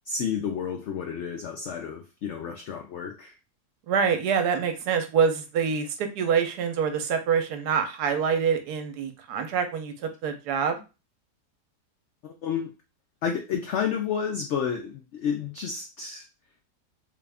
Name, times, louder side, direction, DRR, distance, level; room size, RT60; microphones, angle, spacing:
voice 1, 0.1-3.3 12.2-12.7 13.2-16.2, left 7 dB, 90° left, 3 dB, 0.6 m, -30 dB
voice 2, 3.9-10.8, right 6 dB, 75° right, 6 dB, 1.2 m, -26 dB
3.3 x 2.4 x 3.4 m, 0.29 s
omnidirectional pair, 1.8 m